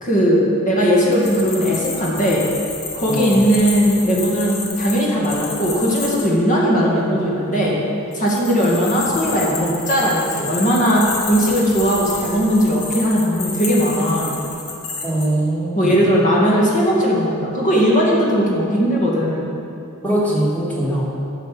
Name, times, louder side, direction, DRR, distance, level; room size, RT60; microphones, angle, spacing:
voice 1, 0.0-2.5 3.0-7.8 8.1-14.4 15.7-19.5, equal, 35° left, -4 dB, 2.2 m, -18 dB
sound 1, 1.0-6.3 8.1-15.3, left 4 dB, 65° left, 1.6 m, -30 dB
voice 2, 3.1-3.4 15.0-16.0 20.0-21.0, right 1 dB, 5° left, -7 dB, 2.6 m, -21 dB
10.0 x 6.8 x 6.9 m, 2.8 s
head